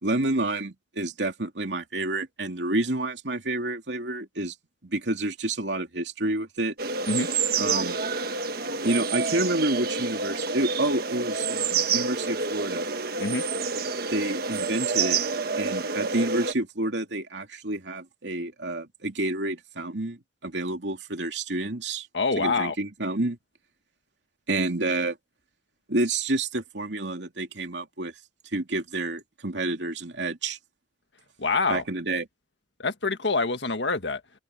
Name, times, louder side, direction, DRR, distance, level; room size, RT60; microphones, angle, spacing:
voice 1, 0.0-4.5 4.8-6.7 7.6-8.0 8.8-12.9 14.1-15.2 15.6-22.1 22.4-23.4 24.5-25.2 25.9-28.1 28.5-30.6 31.7-32.3, right 2 dB, 85° right, 2.7 m, -29 dB
sound 1, 6.8-16.5, right 4 dB, 60° right, 1.4 m, -28 dB
voice 2, 22.1-22.7 31.4-31.8 32.8-34.2, left 3 dB, 85° left, 1.7 m, -26 dB
open air
head